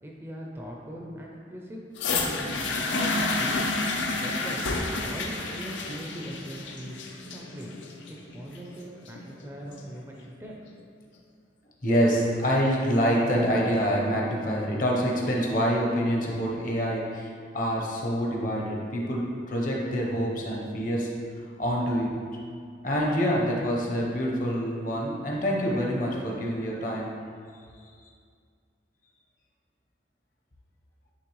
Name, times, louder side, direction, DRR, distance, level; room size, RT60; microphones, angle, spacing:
voice 1, 0.0-1.8 2.2-3.7 4.1-4.7 5.0-7.7 8.1-10.6, equal, 15° right, -2 dB, 0.5 m, -41 dB
sound 1, 2.0-10.0 10.8-10.9, left 3 dB, 75° left, 0.6 m, -30 dB
voice 2, 11.8-21.1 21.6-22.2 22.8-27.2, equal, 45° left, -2 dB, 0.9 m, -26 dB
9.6 x 3.3 x 3.1 m, 2.1 s
head